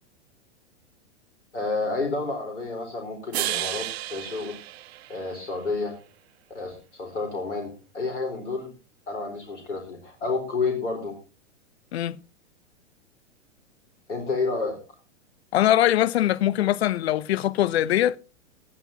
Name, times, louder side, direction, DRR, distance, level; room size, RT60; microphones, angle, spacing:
voice 1, 1.5-4.6 5.1-6.0 6.5-8.7 9.1-11.1 14.1-15.0, left 3 dB, 85° left, 4.1 m, -30 dB
sound 1, 3.3-5.7, right 15 dB, 65° right, 0.5 m, -32 dB
voice 2, 15.5-18.2, left 13 dB, 65° left, 0.9 m, -22 dB
19.0 x 12.5 x 2.8 m
hypercardioid pair, 110°, 35 cm